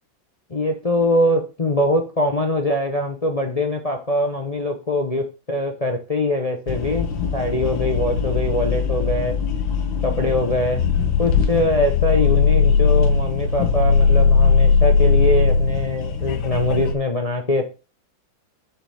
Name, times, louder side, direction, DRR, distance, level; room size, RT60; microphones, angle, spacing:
voice 1, 0.5-9.4 10.0-10.8 11.2-17.7, left 1 dB, 40° left, 4 dB, 0.5 m, -23 dB
sound 1, 6.7-16.9, left 5 dB, 80° left, 1.8 m, -19 dB
7.1 x 5.8 x 3.5 m, 0.31 s
omnidirectional pair, 2.1 m